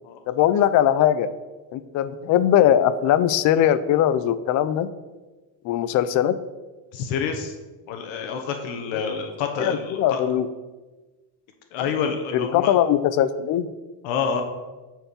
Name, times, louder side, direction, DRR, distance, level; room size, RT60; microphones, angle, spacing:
voice 1, 0.3-1.3 1.7-4.9 5.6-6.4 9.6-10.5 12.3-13.7, left 10 dB, 40° left, 13 dB, 0.4 m, -20 dB
voice 2, 6.9-7.5 7.9-10.2 11.7-12.7 14.0-14.4, left 6 dB, 65° left, 5 dB, 1.2 m, -28 dB
8.9 x 4.6 x 6.9 m, 1.2 s
cardioid pair, 150°, 49 cm